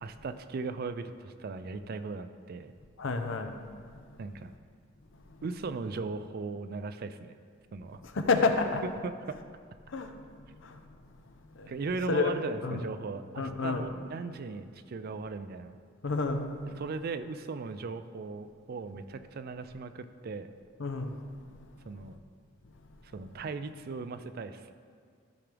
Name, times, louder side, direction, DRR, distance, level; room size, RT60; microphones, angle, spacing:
voice 1, 0.0-2.7 4.2-4.5 5.4-7.4 7.7-8.0 9.0-9.4 11.7-15.8 16.7-20.5 21.9-22.2 23.0-24.7, right 4 dB, 50° right, 11 dB, 0.4 m, -38 dB
voice 2, 3.0-3.5 3.9-4.0 8.1-8.8 9.9-10.1 10.6-10.8 11.5-11.7 12.1-12.4 12.6-12.8 13.4-13.8 16.0-16.6 20.8-21.1 21.5-21.6, left 4 dB, 60° left, 6 dB, 0.7 m, -29 dB
13.5 x 5.9 x 3.4 m, 2.1 s
head